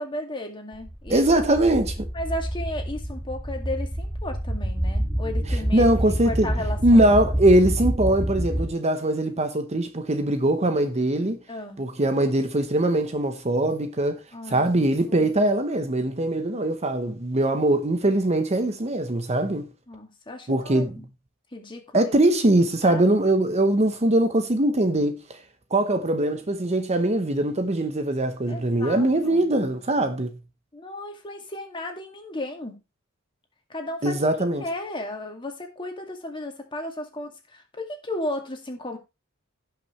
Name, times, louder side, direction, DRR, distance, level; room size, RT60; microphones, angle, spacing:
voice 1, 0.0-1.3 2.1-5.9 6.2-7.1 11.5-11.9 14.3-15.3 19.9-21.0 21.5-22.1 22.8-23.0 28.5-29.5 30.7-32.8 33.7-34.2 34.6-39.0, left 1 dB, 25° left, 2.2 m, -34 dB
sound 1, 0.7-8.7, equal, 5° right, 1.9 m, -28 dB
voice 2, 1.1-2.1 5.7-6.5 6.8-11.4 11.8-14.2 14.5-19.7 20.5-21.0 21.9-25.4 25.7-30.4 34.0-34.6, right 1 dB, 30° right, 0.9 m, -22 dB
16.5 x 5.9 x 3.1 m
head